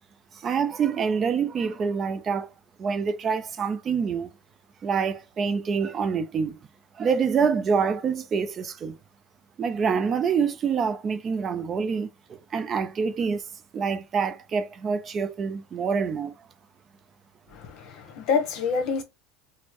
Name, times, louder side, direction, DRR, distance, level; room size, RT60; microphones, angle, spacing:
voice 1, 0.3-2.5 2.8-4.3 4.8-6.6 7.0-9.0 9.6-13.4 13.7-16.3, right 6 dB, 30° right, 0.5 m, -26 dB
voice 2, 17.5-19.0, left 5 dB, 55° left, 1.0 m, -27 dB
4.2 x 2.0 x 3.0 m
supercardioid pair, 130°, 0 cm